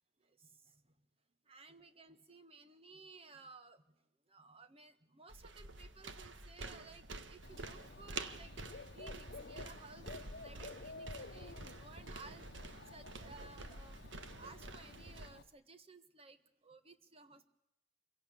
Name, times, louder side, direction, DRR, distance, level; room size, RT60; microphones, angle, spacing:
voice 1, 0.2-1.0 1.4-17.5, right 3 dB, 30° right, 10 dB, 1.5 m, -58 dB
sound 1, 5.3-15.3, right 3 dB, 85° right, 1.6 m, -49 dB
Dog / Bird, 7.4-15.4, left 3 dB, 60° left, 1.0 m, -53 dB
26.0 x 17.0 x 8.5 m, 0.84 s
head